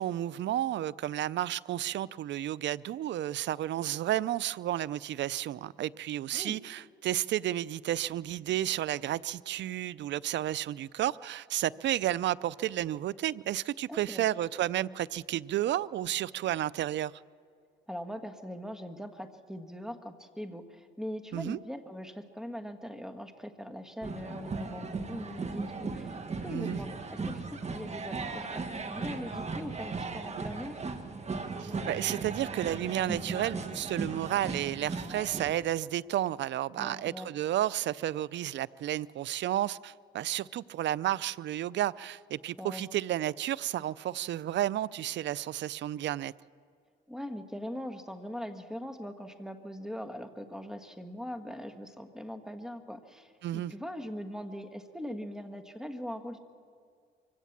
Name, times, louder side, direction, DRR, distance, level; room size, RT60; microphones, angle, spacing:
voice 1, 0.0-17.1 21.3-21.6 26.5-26.8 31.6-46.3 53.4-53.7, right 13 dB, 65° right, 0.5 m, -32 dB
voice 2, 13.9-14.3 17.9-30.8 36.8-37.3 42.6-43.0 47.1-56.4, equal, 5° right, 1.6 m, -41 dB
sound 1, 24.0-35.5, right 4 dB, 35° right, 1.7 m, -37 dB
24.5 x 17.0 x 7.4 m
cardioid pair, 90°, 20 cm